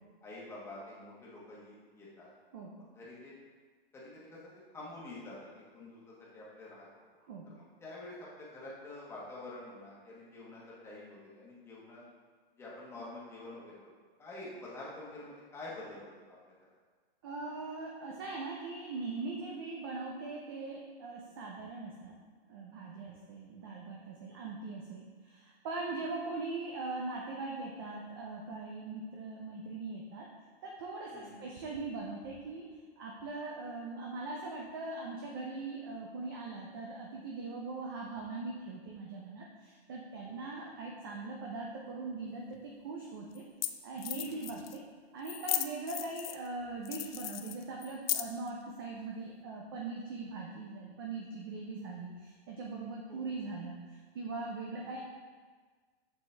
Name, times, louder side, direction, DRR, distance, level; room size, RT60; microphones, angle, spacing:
voice 1, 0.2-2.3 2.9-3.3 3.9-4.4 4.7-6.9 7.5-12.0 12.6-13.9 14.2-16.4 23.0-23.2 31.1-31.4 40.6-40.7 44.2-44.5 53.1-53.3 54.8-54.9, left 2 dB, 10° left, -6 dB, 1.1 m, -47 dB
voice 2, 17.2-22.2 22.5-30.3 30.6-42.6 42.8-43.4 43.8-44.8 45.1-55.0, right 3 dB, 20° right, -1 dB, 0.4 m, -41 dB
sound 1, 42.5-42.6 43.4-43.5 43.6-43.7 44.0-44.8 45.2-46.5 46.8-48.5, left 11 dB, 65° left, 0.5 m, -36 dB
6.9 x 6.4 x 3.3 m, 1.5 s
hypercardioid pair, 160°, 32 cm